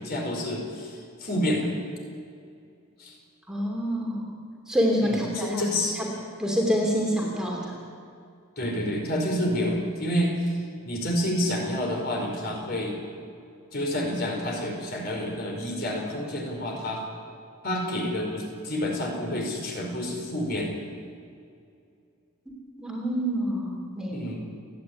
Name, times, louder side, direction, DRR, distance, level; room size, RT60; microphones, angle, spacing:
voice 1, 0.0-1.7 3.0-3.2 5.0-6.0 8.6-10.5 10.8-13.0 13.7-17.0 17.6-20.7 24.1-24.4, equal, 45° left, 0 dB, 5.0 m, -29 dB
voice 2, 3.5-4.3 4.7-5.6 6.0-6.1 6.4-7.8 22.8-24.3, equal, 5° right, -2 dB, 2.9 m, -27 dB
29.5 x 10.5 x 9.6 m, 2.4 s
head